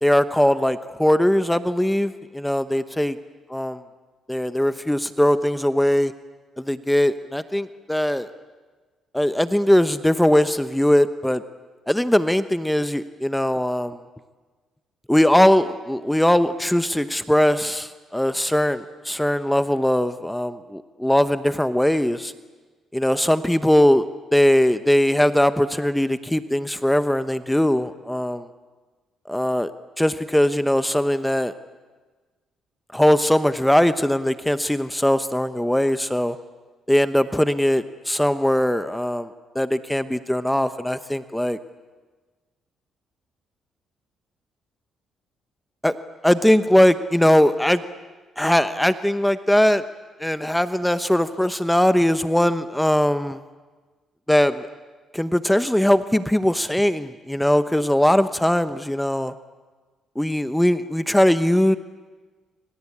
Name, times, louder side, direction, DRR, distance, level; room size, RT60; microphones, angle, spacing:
voice 1, 0.0-3.2 3.5-3.8 4.3-6.1 6.6-8.3 9.1-11.4 11.9-14.0 15.1-22.3 22.9-24.0 24.3-28.5 29.3-29.7 30.0-31.5 32.9-36.4 36.9-41.6 45.8-45.9 46.2-47.8 48.4-49.8 50.2-53.4 54.3-54.7 55.1-59.3 60.2-61.8, left 1 dB, 5° left, 11 dB, 0.9 m, -20 dB
26.5 x 25.5 x 8.7 m, 1.3 s
cardioid pair, 90°, 0 cm